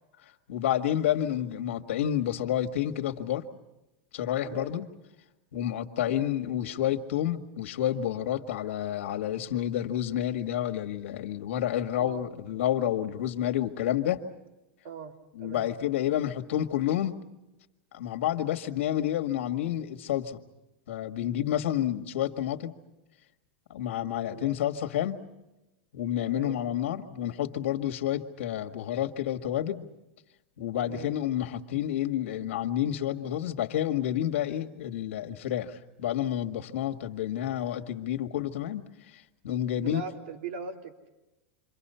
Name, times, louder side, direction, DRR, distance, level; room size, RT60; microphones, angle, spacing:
voice 1, 0.5-3.4 4.1-4.9 5.5-14.2 15.4-17.1 17.9-20.4 20.9-22.7 23.7-25.2 25.9-29.9 30.6-38.8 39.1-40.0, left 11 dB, 85° left, 6 dB, 1.8 m, -29 dB
voice 2, 4.4-4.8 6.0-6.3 12.0-12.2 14.8-15.7 24.3-24.6 26.3-26.6 30.8-31.1 39.8-41.1, right 6 dB, 65° right, 3 dB, 3.2 m, -40 dB
28.0 x 25.0 x 5.7 m, 1.0 s
supercardioid pair, 155°, 7 cm